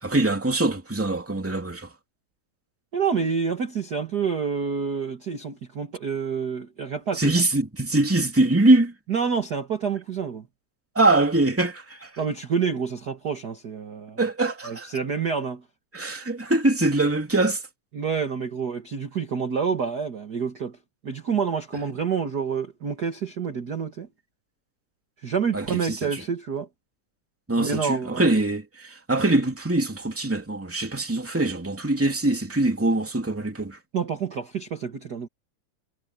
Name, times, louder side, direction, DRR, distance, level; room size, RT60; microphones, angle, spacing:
voice 1, 0.0-1.9 7.1-8.9 10.9-12.1 14.2-15.0 15.9-17.6 25.5-26.2 27.5-33.8, right 2 dB, 5° right, 2.1 m, -23 dB
voice 2, 2.9-7.3 9.1-10.5 12.2-14.2 14.6-15.6 17.9-20.8 21.0-24.1 25.2-26.7 27.6-28.3 33.9-35.3, right 6 dB, 45° right, 1.4 m, -28 dB
omnidirectional pair, 4.0 m